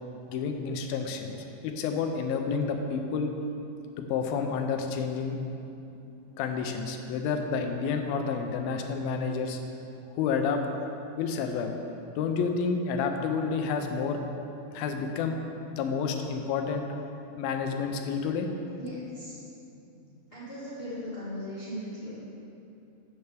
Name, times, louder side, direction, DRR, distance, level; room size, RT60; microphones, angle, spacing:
voice 1, 0.3-1.4 1.6-3.3 4.0-5.4 6.4-9.6 10.1-10.6 11.2-11.8 12.2-14.2 14.7-15.4 15.7-16.9 17.4-18.5, left 5 dB, 80° left, 4 dB, 2.5 m, -29 dB
voice 2, 18.7-19.4 19.9-22.2, equal, 30° left, -11 dB, 1.0 m, -39 dB
12.5 x 8.4 x 3.4 m, 2.7 s
omnidirectional pair, 4.2 m